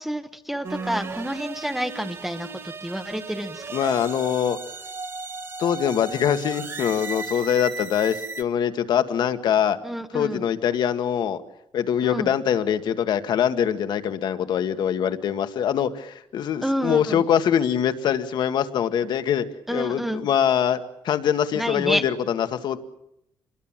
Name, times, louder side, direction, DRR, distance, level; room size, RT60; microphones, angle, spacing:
voice 1, 0.0-3.6 9.8-10.4 12.0-12.3 16.6-17.2 19.7-20.3 21.5-22.0, equal, 5° right, 6 dB, 1.1 m, -29 dB
sound 1, 0.6-8.4, right 4 dB, 35° right, 2.4 m, -35 dB
voice 2, 3.7-4.6 5.6-9.8 10.1-11.4 11.7-19.5 19.7-20.8 21.0-22.8, left 9 dB, 65° left, 9 dB, 1.9 m, -23 dB
28.0 x 22.0 x 7.5 m, 0.79 s
cardioid pair, 155°, 8 cm